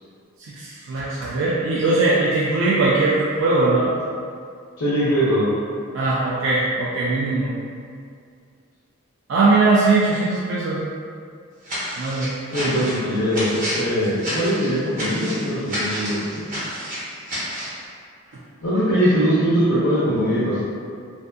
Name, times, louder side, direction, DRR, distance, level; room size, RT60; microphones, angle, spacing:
voice 1, 0.5-3.9 5.9-7.5 9.3-10.8 12.0-12.3, right 3 dB, 60° right, -7 dB, 0.3 m, -20 dB
voice 2, 4.8-5.5 12.5-16.7 18.6-20.6, equal, 80° left, -10 dB, 0.5 m, -21 dB
sound 1, 11.6-17.8, equal, 40° right, 0.8 m, -29 dB
2.6 x 2.5 x 2.2 m, 2.3 s
head